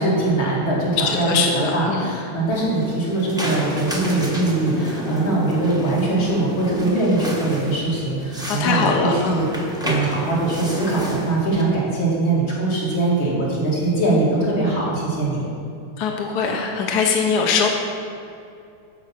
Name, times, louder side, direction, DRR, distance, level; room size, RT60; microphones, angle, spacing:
voice 1, 0.0-15.5, right 2 dB, 75° left, -6 dB, 3.2 m, -22 dB
voice 2, 1.0-2.1 8.5-9.4 16.0-17.7, left 5 dB, 60° left, 1 dB, 1.3 m, -21 dB
sound 1, 2.5-11.6, right 1 dB, 5° right, 0.6 m, -30 dB
13.5 x 5.1 x 5.9 m, 2.5 s
omnidirectional pair, 2.2 m